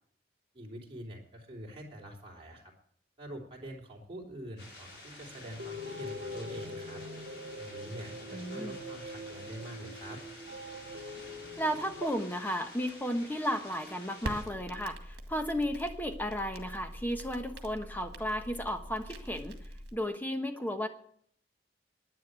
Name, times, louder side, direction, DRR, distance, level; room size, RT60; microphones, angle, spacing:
voice 1, 0.5-2.7 3.2-7.0 7.6-10.2, equal, 30° right, -2 dB, 3.5 m, -45 dB
sound 1, 4.6-14.4, left 2 dB, 80° left, 5.8 m, -50 dB
sound 2, 5.4-12.1, left 1 dB, 90° right, 1.2 m, -43 dB
voice 2, 8.3-8.8 11.6-19.6 19.9-20.9, equal, 10° left, 6 dB, 1.1 m, -34 dB
Crackle, 14.2-19.9, right 1 dB, 70° right, 1.9 m, -44 dB
11.0 x 9.7 x 8.1 m, 0.65 s
head